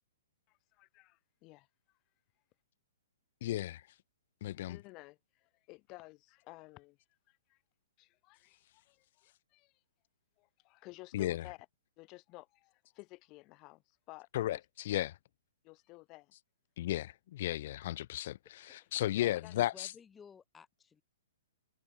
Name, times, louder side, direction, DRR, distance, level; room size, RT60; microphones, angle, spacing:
voice 1, 0.5-1.7 4.7-7.0 7.3-7.6 8.0-9.7 10.4-11.7 12.0-14.6 15.6-16.3 19.1-19.6, left 23 dB, 35° left, 1.7 m, -54 dB
voice 2, 3.4-3.8 4.4-4.8 11.1-11.4 14.3-15.1 16.8-18.4 18.7-19.9, left 14 dB, 50° left, 0.4 m, -34 dB
voice 3, 19.5-21.0, left 6 dB, 15° left, 1.3 m, -56 dB
figure-of-eight pair, 120°, 0 cm